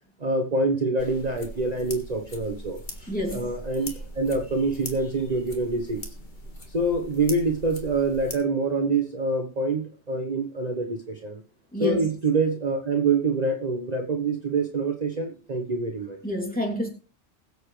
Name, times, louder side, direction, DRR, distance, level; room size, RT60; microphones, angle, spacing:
voice 1, 0.2-6.1 6.7-11.4 11.8-16.2, right 3 dB, 35° right, 1.2 m, -26 dB
sound 1, 1.0-8.3, equal, 45° left, 2.0 m, -40 dB
voice 2, 3.1-3.5 11.7-12.1 16.2-16.9, left 1 dB, 5° left, 2.9 m, -28 dB
21.0 x 8.1 x 3.3 m
omnidirectional pair, 1.2 m